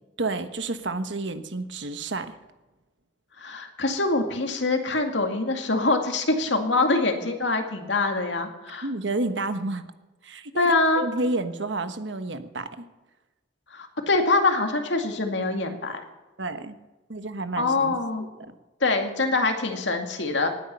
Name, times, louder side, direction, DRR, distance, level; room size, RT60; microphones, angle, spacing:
voice 1, 0.2-2.3 8.8-9.8 10.2-12.8 16.4-16.8 17.1-18.5, right 2 dB, 70° right, 10 dB, 1.3 m, -30 dB
voice 2, 3.4-8.8 10.6-11.0 13.7-16.0 17.6-18.3 18.8-20.5, left 3 dB, 70° left, 5 dB, 2.3 m, -24 dB
19.0 x 9.5 x 6.8 m, 1.1 s
head